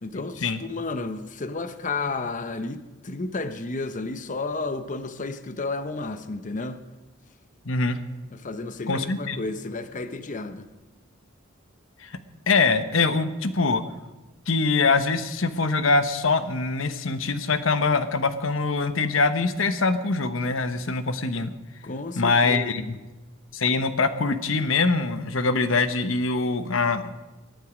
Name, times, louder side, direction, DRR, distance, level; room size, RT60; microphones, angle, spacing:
voice 1, 0.0-6.8 8.3-10.7 21.8-23.0, left 3 dB, 40° left, 0.8 m, -32 dB
voice 2, 7.6-8.0 8.9-9.4 12.0-12.1 12.5-13.8 14.5-21.5 22.2-23.0 23.5-27.0, left 3 dB, 70° left, 1.1 m, -23 dB
23.0 x 9.2 x 5.1 m
head